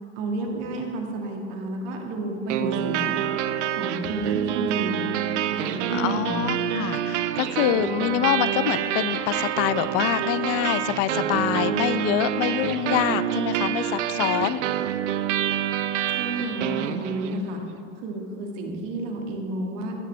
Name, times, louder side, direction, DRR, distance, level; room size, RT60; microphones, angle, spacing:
voice 1, 0.2-3.2 3.7-5.1 5.5-6.3 16.1-17.6 18.0-20.0, right 2 dB, 55° right, 1 dB, 2.1 m, -31 dB
sound 1, 2.5-17.5, right 10 dB, 70° right, 0.7 m, -27 dB
voice 2, 5.9-14.6, left 13 dB, 40° left, 16 dB, 0.5 m, -25 dB
17.0 x 7.5 x 3.3 m, 2.8 s
hypercardioid pair, 95°, 36 cm